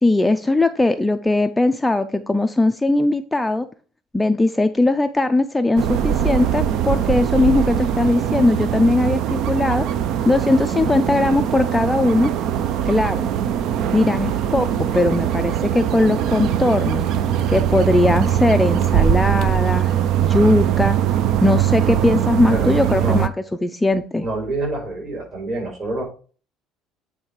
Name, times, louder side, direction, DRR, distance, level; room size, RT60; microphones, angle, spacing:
voice 1, 0.0-3.7 4.1-9.8 10.3-12.3 12.9-13.2 13.9-17.1 17.5-21.0 21.4-23.3 23.6-24.3, left 2 dB, 5° left, 8 dB, 0.4 m, -19 dB
sound 1, 5.8-23.3, right 10 dB, 60° right, 0.5 m, -21 dB
voice 2, 22.5-23.2 24.2-26.0, right 2 dB, 40° right, 0 dB, 3.8 m, -27 dB
8.8 x 3.3 x 4.7 m, 0.39 s
cardioid pair, 135°, 0 cm